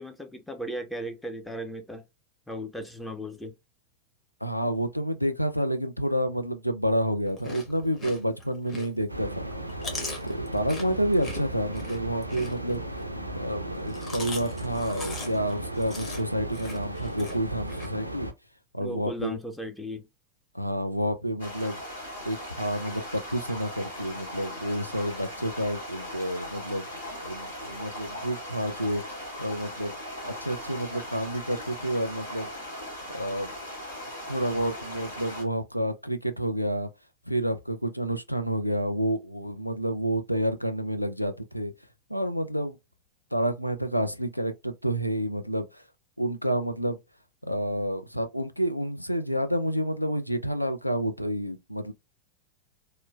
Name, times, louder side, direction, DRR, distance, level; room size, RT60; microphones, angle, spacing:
voice 1, 0.0-2.0 2.5-3.5 18.8-20.1, equal, 5° left, 0.4 m, -36 dB
voice 2, 4.4-9.5 10.2-12.8 13.3-18.3 18.7-19.4 20.5-21.8 22.2-26.9 27.2-29.0 29.4-29.9 30.2-32.5 33.1-33.5 34.3-36.9 37.3-41.7 42.1-42.8 43.3-45.8 46.2-47.0 47.4-51.9, equal, 90° left, 0.3 m, -29 dB
Chewing mastication, 7.3-9.1 9.5-13.0 13.7-17.9, left 2 dB, 25° left, 0.9 m, -40 dB
sound 1, 9.1-18.3, right 1 dB, 90° right, 0.3 m, -36 dB
sound 2, 21.4-35.4, left 1 dB, 75° left, 1.7 m, -39 dB
3.0 x 2.0 x 2.2 m
figure-of-eight pair, 90°, 0 cm